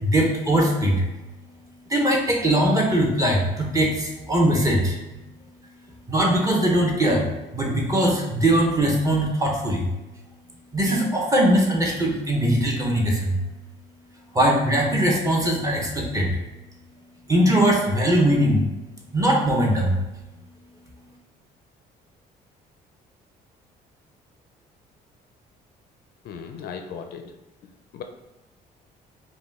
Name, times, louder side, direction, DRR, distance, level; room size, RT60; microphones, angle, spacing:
voice 1, 0.0-1.0 1.9-5.0 6.1-7.3 7.5-9.9 10.7-13.4 14.3-16.4 17.3-18.6 19.1-20.0, right 1 dB, 20° right, -1 dB, 1.0 m, -21 dB
voice 2, 26.2-27.3 27.9-28.0, left 7 dB, 65° left, 6 dB, 0.5 m, -36 dB
5.0 x 2.3 x 3.5 m, 1.0 s
cardioid pair, 110°, 17 cm